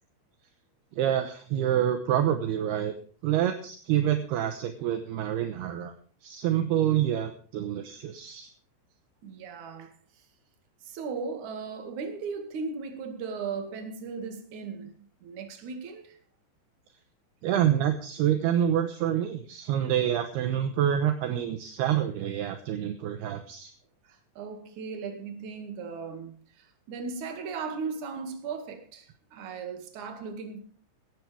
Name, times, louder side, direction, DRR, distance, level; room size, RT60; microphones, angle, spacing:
voice 1, 1.0-2.9 3.2-5.9 6.2-8.5 17.4-23.7, right 10 dB, 75° right, 2.5 m, -27 dB
voice 2, 9.2-9.9 10.8-16.2 24.0-30.6, right 5 dB, 50° right, 2.7 m, -37 dB
17.0 x 14.0 x 3.4 m
omnidirectional pair, 5.7 m